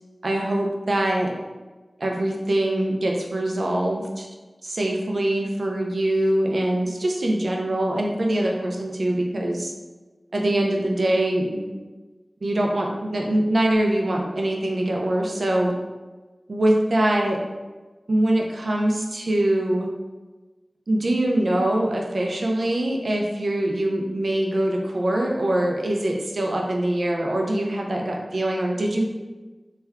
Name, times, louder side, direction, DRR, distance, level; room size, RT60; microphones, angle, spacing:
voice 1, 0.2-1.3 2.0-4.3 4.6-9.7 10.3-11.6 12.4-15.7 16.5-17.4 18.1-19.9 20.9-29.1, right 1 dB, 80° right, 0 dB, 0.5 m, -23 dB
3.3 x 2.2 x 3.4 m, 1.2 s
wide cardioid pair, 55°, 0 cm